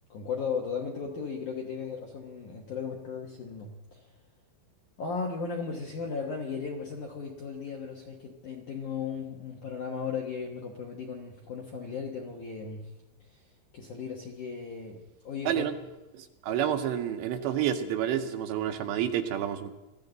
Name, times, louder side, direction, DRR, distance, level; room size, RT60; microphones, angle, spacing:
voice 1, 0.1-4.1 5.0-12.9 13.2-13.4 13.7-15.8, left 5 dB, 70° left, 1 dB, 1.9 m, -36 dB
voice 2, 16.4-19.7, right 10 dB, 80° right, 7 dB, 2.8 m, -29 dB
21.0 x 15.0 x 3.9 m, 1.0 s
omnidirectional pair, 5.4 m